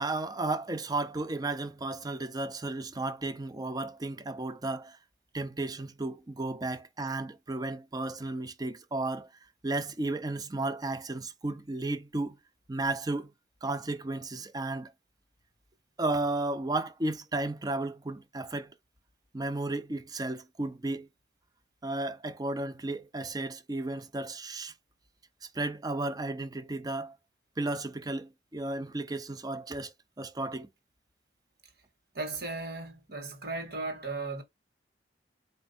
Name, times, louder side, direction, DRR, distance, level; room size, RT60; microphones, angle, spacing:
voice 1, 0.0-5.0 5.3-9.3 9.6-12.4 12.7-13.3 13.6-14.9 16.0-18.7 19.3-21.1 21.8-24.7 25.5-27.1 27.6-30.7, right 2 dB, 20° right, 0.6 m, -33 dB
voice 2, 32.1-34.4, right 3 dB, 60° right, 1.7 m, -36 dB
4.6 x 2.7 x 4.2 m
head